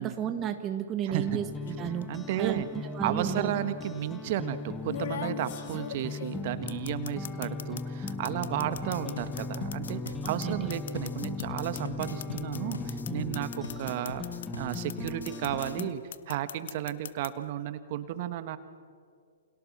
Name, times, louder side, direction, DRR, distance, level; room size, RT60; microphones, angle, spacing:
voice 1, 0.0-2.1 2.4-3.5 8.6-8.7 10.2-10.7, right 10 dB, 25° right, 8 dB, 1.2 m, -33 dB
voice 2, 1.0-1.4 2.1-2.7 3.0-14.2 14.5-18.6, right 12 dB, 45° right, 12 dB, 1.5 m, -33 dB
sound 1, 1.1-15.9, left 3 dB, 15° left, 1.2 m, -38 dB
sound 2, 1.7-2.0 3.2-3.3 4.9-14.5 14.7-15.8 16.1-17.3, left 10 dB, 60° left, 0.9 m, -40 dB
sound 3, 8.7-15.8, left 3 dB, 80° left, 1.9 m, -43 dB
29.0 x 27.0 x 6.1 m, 2.2 s
figure-of-eight pair, 120°, 0 cm